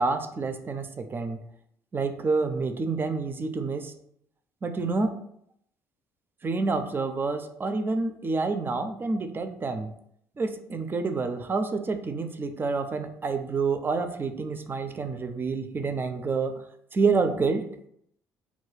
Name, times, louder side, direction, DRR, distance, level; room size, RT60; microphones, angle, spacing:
voice 1, 0.0-1.4 1.9-3.9 4.6-5.1 6.4-9.9 10.4-16.6 16.9-17.7, right 4 dB, 25° right, 8 dB, 0.4 m, -28 dB
2.3 x 2.1 x 3.2 m, 0.71 s
hypercardioid pair, 50°, 8 cm